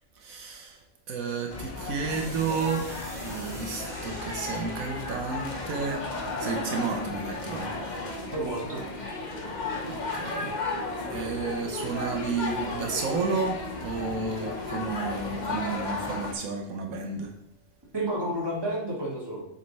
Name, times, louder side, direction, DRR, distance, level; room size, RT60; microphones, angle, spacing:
voice 1, 0.2-0.8 1.1-2.9 3.2-6.0 6.4-7.7 9.9-10.5 11.1-17.3, right 4 dB, 80° right, 2 dB, 1.4 m, -32 dB
sound 1, 1.5-16.3, left 3 dB, 35° left, 1.1 m, -34 dB
sound 2, 2.1-6.9, right 1 dB, 35° right, 2.5 m, -46 dB
voice 2, 8.3-8.8 17.9-19.4, right 1 dB, 15° right, -5 dB, 2.2 m, -30 dB
7.7 x 4.3 x 4.1 m, 0.75 s
omnidirectional pair, 1.4 m